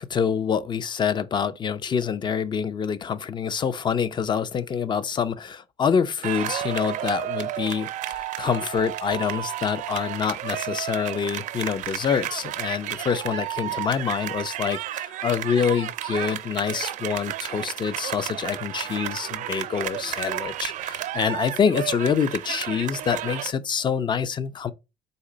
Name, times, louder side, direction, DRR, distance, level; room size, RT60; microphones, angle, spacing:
voice 1, 0.0-24.7, left 7 dB, 30° left, 0.5 m, -26 dB
sound 1, 6.2-23.5, right 13 dB, 60° right, 0.5 m, -32 dB
4.1 x 3.3 x 3.8 m
cardioid pair, 110°, 14 cm